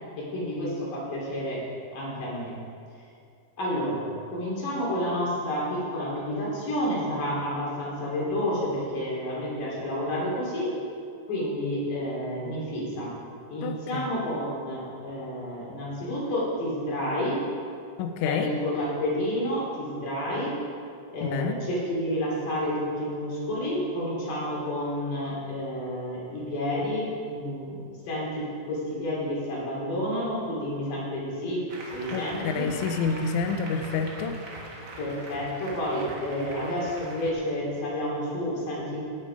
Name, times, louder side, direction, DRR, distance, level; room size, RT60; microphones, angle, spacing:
voice 1, 0.2-1.6 1.9-2.5 3.6-4.0 4.3-10.7 11.3-13.1 13.5-17.4 18.2-20.5 21.1-31.6 31.9-32.7 35.0-39.0, equal, 65° left, -5 dB, 4.4 m, -30 dB
voice 2, 13.6-14.1 18.0-18.5 21.2-21.6 32.1-34.4, left 5 dB, 80° left, 6 dB, 1.7 m, -28 dB
Applause, 31.7-37.3, right 2 dB, 60° right, 1.1 m, -42 dB
17.5 x 6.7 x 5.0 m, 2.4 s
omnidirectional pair, 4.1 m